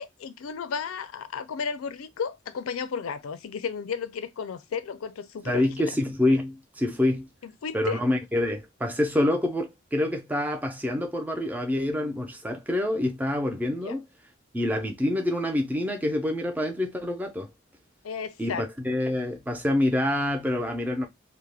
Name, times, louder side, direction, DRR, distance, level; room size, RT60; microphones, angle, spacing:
voice 1, 0.0-5.9 7.4-8.0 13.8-14.0 18.0-18.6, left 6 dB, 90° left, 0.4 m, -33 dB
voice 2, 5.4-7.3 7.7-14.0 14.5-17.5 18.4-21.1, left 1 dB, 10° right, 0.4 m, -26 dB
2.3 x 2.1 x 3.2 m
head